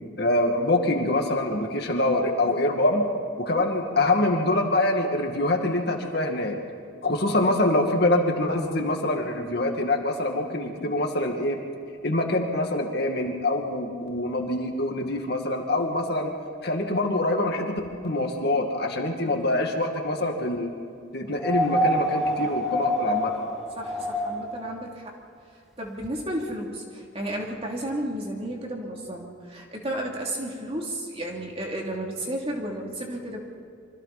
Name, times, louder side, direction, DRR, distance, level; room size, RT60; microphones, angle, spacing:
voice 1, 0.2-3.1 3.4-6.6 7.0-11.6 12.0-16.3 16.6-20.7 21.1-23.3, left 2 dB, 55° left, 2 dB, 2.3 m, -25 dB
sound 1, 21.4-24.6 26.0-26.1, equal, ahead, 1.7 m, -26 dB
voice 2, 23.8-25.1 25.8-33.4, right 1 dB, 30° right, -1 dB, 3.1 m, -33 dB
26.5 x 24.5 x 4.3 m, 2.3 s
head